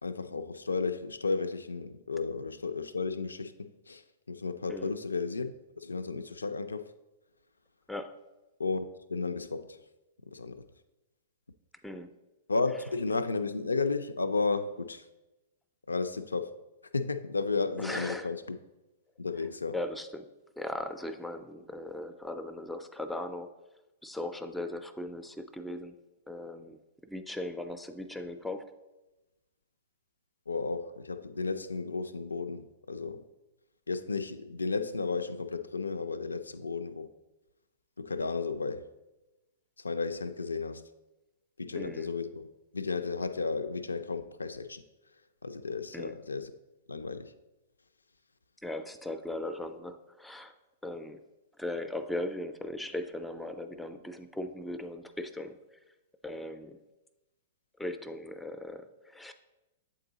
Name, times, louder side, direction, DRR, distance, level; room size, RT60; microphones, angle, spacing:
voice 1, 0.0-4.0 4.3-6.8 8.6-9.8 10.3-10.6 12.5-15.0 15.9-16.5 16.9-18.6 19.2-19.8 30.5-33.2 33.9-37.1 38.0-38.9 39.8-40.9 41.6-42.5 42.7-44.8 45.4-46.5 46.9-47.3, left 4 dB, 90° left, 0.3 m, -33 dB
voice 2, 17.8-18.3 19.7-20.2 20.6-23.5 24.0-25.9 26.3-26.8 27.1-28.7 41.7-42.1 45.9-46.2 48.6-50.5 50.8-51.2 51.6-55.6 56.2-56.8 57.8-59.3, left 1 dB, ahead, 0.4 m, -38 dB
7.7 x 3.8 x 3.9 m
hypercardioid pair, 110°, 0 cm